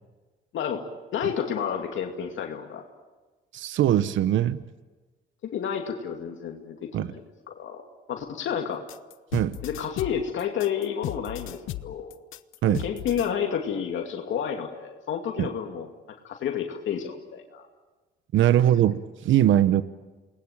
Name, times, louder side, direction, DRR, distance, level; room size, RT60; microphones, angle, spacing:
voice 1, 1.1-2.8 5.4-7.2 7.5-7.8 8.1-8.8 9.6-12.1 12.6-15.9 16.2-17.7, left 8 dB, 75° left, 2 dB, 2.6 m, -30 dB
voice 2, 3.5-4.6 6.9-7.1 9.3-9.6 12.6-12.8 15.4-15.5 18.3-19.8, right 11 dB, 75° right, 14 dB, 0.9 m, -21 dB
sound 1, 8.9-13.3, left 14 dB, 90° left, 1.0 m, -36 dB
28.5 x 20.5 x 9.0 m, 1.3 s
cardioid pair, 90°, 20 cm